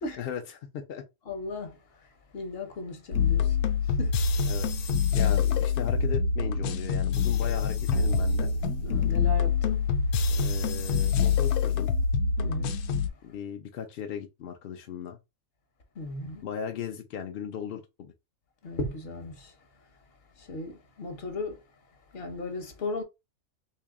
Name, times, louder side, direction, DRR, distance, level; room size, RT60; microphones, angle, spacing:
voice 1, 0.2-1.0 4.4-8.5 10.3-11.9 13.2-15.2 16.4-18.1, left 8 dB, 65° left, 0.6 m, -37 dB
voice 2, 1.3-2.1 2.3-3.6 3.8-4.2 8.8-9.9 12.4-12.8 15.9-16.4 18.6-19.5 20.4-21.6 22.1-23.0, left 2 dB, 50° left, 0.9 m, -36 dB
sound 1, 3.1-13.1, left 5 dB, 90° left, 1.1 m, -25 dB
2.9 x 2.7 x 3.5 m
omnidirectional pair, 1.5 m